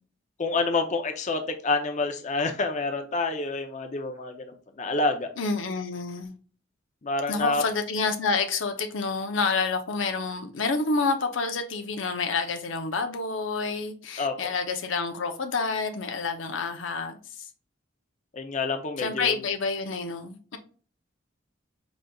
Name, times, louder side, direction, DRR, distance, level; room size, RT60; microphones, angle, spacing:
voice 1, 0.4-5.3 7.0-7.6 14.2-14.5 18.3-19.4, left 3 dB, 40° left, 0.6 m, -28 dB
voice 2, 5.4-6.3 7.3-17.2 19.0-20.6, left 4 dB, 85° left, 0.6 m, -28 dB
5.0 x 4.0 x 2.3 m
head